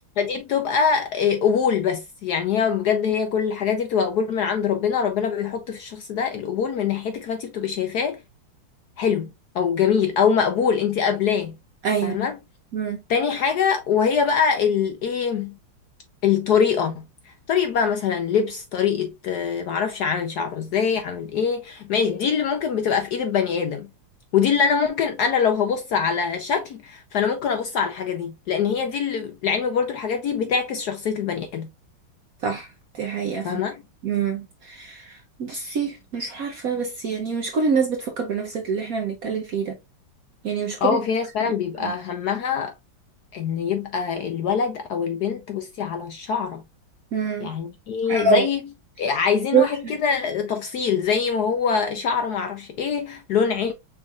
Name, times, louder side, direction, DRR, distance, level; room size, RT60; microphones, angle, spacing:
voice 1, 0.2-8.2 9.0-9.3 9.5-11.5 12.0-12.4 13.1-15.6 16.2-23.9 24.3-31.7 33.4-33.8 40.8-42.7 43.3-46.6 47.4-48.7 49.0-53.7, left 6 dB, 70° left, 1.0 m, -23 dB
voice 2, 11.8-12.2 12.7-13.0 32.4-32.7 32.9-33.5 34.0-39.8 40.4-41.0 41.8-41.9 47.1-47.5 48.1-48.5 49.5-49.7, right 5 dB, 60° right, 0.9 m, -25 dB
6.3 x 3.5 x 2.3 m
omnidirectional pair, 2.3 m